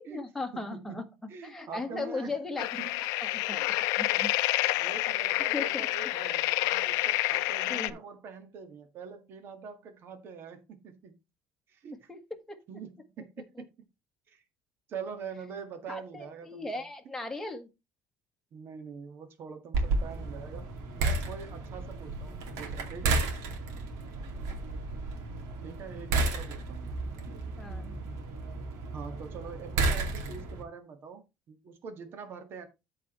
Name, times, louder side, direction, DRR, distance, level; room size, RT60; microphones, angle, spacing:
voice 1, 0.0-1.0 1.4-2.7 3.2-3.6 4.0-4.3 5.1-5.2 5.5-6.1 7.7-8.0 12.1-12.2 12.5-12.6 15.9-17.7 27.6-28.0, left 3 dB, 5° left, 1.5 m, -37 dB
voice 2, 0.5-2.4 2.8-3.0 3.4-3.7 4.1-4.3 4.8-11.1 11.7-12.1 12.7-13.5 14.3-14.4 14.9-16.8 18.5-20.7 21.0-23.3 25.6-27.0 28.9-32.7, right 6 dB, 45° right, 1.7 m, -44 dB
sound 1, 2.6-7.9, left 18 dB, 85° left, 0.6 m, -28 dB
sound 2, 19.7-30.6, right 3 dB, 80° right, 2.4 m, -32 dB
13.5 x 4.8 x 3.1 m
cardioid pair, 150°, 5 cm